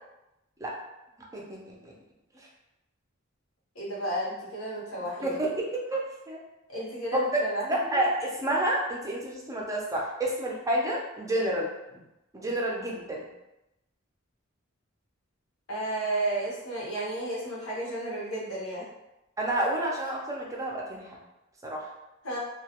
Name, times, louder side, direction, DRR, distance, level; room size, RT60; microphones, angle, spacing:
voice 1, 1.3-1.9 5.2-6.4 7.1-7.4 7.7-11.7 12.3-13.2 19.4-21.2 21.6-21.9, right 1 dB, 15° right, -2 dB, 0.4 m, -29 dB
voice 2, 3.7-5.4 6.7-8.0 15.7-18.9 22.2-22.4, right 1 dB, 85° left, -5 dB, 0.9 m, -32 dB
2.2 x 2.1 x 2.8 m, 0.93 s
head